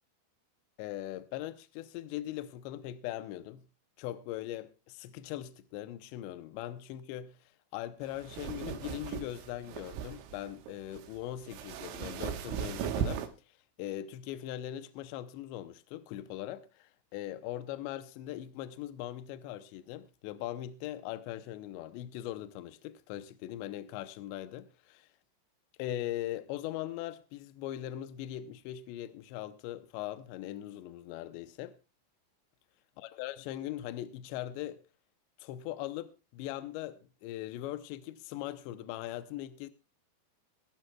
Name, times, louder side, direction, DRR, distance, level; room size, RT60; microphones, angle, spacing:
voice 1, 0.8-3.7 4.0-7.4 7.7-25.1 25.8-31.8 33.0-34.8 35.4-39.7, left 13 dB, 80° left, 2.8 m, -40 dB
sound 1, 8.0-13.3, right 9 dB, 85° right, 3.5 m, -37 dB
22.0 x 12.0 x 2.3 m
omnidirectional pair, 5.5 m